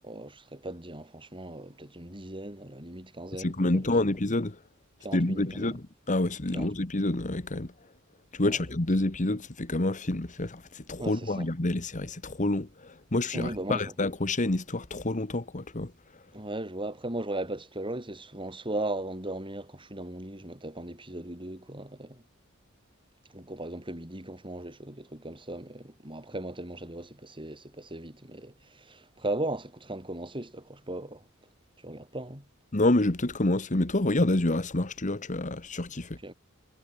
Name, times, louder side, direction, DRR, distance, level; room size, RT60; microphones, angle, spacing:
voice 1, 0.0-3.9 5.0-5.8 6.5-6.7 8.4-8.6 11.0-11.5 13.3-13.9 16.3-22.2 23.3-31.3 31.8-32.5 36.2-36.3, right 1 dB, 25° right, 6.9 m, -37 dB
voice 2, 3.4-4.6 5.1-7.7 8.3-15.9 32.7-36.2, left 2 dB, 40° left, 1.5 m, -28 dB
head